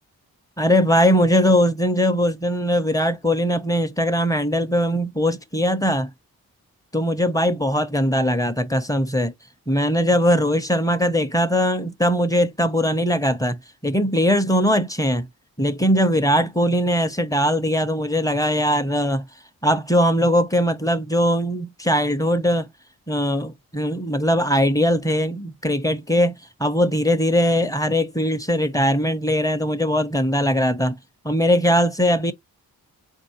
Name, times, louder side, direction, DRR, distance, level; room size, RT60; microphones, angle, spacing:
voice 1, 0.6-6.1 6.9-9.3 9.7-15.3 15.6-19.3 19.6-22.7 23.1-26.3 26.6-31.0 31.2-32.3, equal, 10° left, 0.7 m, -20 dB
3.9 x 2.6 x 2.9 m
supercardioid pair, 45°, 38 cm